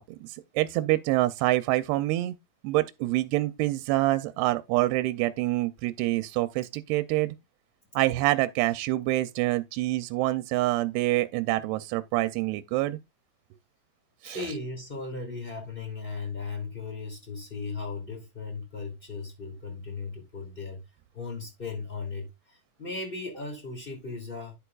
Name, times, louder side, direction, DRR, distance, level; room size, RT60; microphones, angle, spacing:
voice 1, 0.0-2.4 2.6-7.3 8.0-13.0 14.2-14.5, right 17 dB, 85° right, 2.6 m, -26 dB
voice 2, 14.2-20.8 21.1-24.5, left 4 dB, 15° left, 2.2 m, -37 dB
10.5 x 6.8 x 2.4 m
omnidirectional pair, 4.6 m